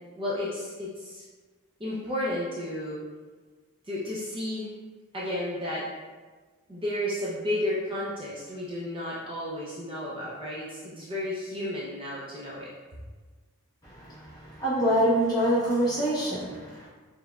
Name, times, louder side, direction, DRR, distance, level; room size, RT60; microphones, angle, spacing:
voice 1, 0.2-1.2 1.8-3.0 3.8-4.7 5.1-5.9 6.7-12.7, left 1 dB, 25° right, -8 dB, 0.5 m, -32 dB
voice 2, 14.6-16.9, equal, 15° left, -9 dB, 1.1 m, -25 dB
4.4 x 3.4 x 2.3 m, 1.4 s
head